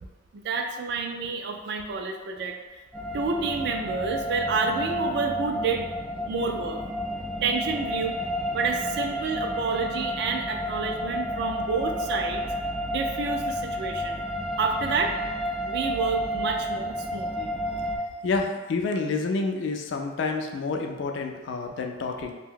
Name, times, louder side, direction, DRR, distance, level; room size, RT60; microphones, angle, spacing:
voice 1, 0.3-2.5 3.1-5.9 6.3-6.8 7.4-8.2 8.5-12.4 12.8-14.2 14.6-15.1 15.6-17.5, right 4 dB, 60° right, 4 dB, 0.3 m, -29 dB
sound 1, 2.9-18.0, equal, ahead, 0.5 m, -31 dB
voice 2, 18.2-22.3, left 3 dB, 70° left, 3 dB, 0.3 m, -28 dB
2.7 x 2.1 x 3.7 m, 1.2 s
head